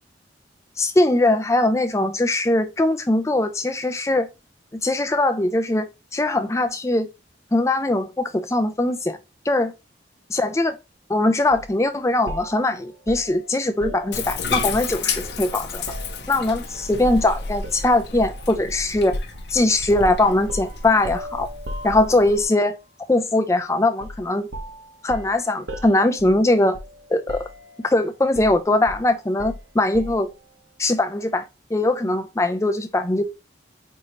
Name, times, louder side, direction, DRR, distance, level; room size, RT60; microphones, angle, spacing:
voice 1, 0.8-4.3 4.7-7.1 7.5-9.2 9.5-9.7 10.3-10.8 11.1-15.8 16.3-19.2 19.5-21.5 21.8-22.8 23.1-24.5 25.0-26.8 27.1-27.5 27.8-30.3 30.8-31.4 31.7-33.2, left 2 dB, 15° left, 0.4 m, -21 dB
sound 1, 11.5-11.7 12.3-14.9 15.2-16.7 17.0-17.3 17.6-18.5 19.3-19.5 19.9-22.5 24.0-24.3 24.5-27.0 27.3-27.9 28.3-30.3, equal, 70° right, 0.8 m, -37 dB
Bathtub (filling or washing), 14.1-22.5, left 4 dB, 60° left, 0.7 m, -31 dB
4.5 x 2.7 x 3.0 m
head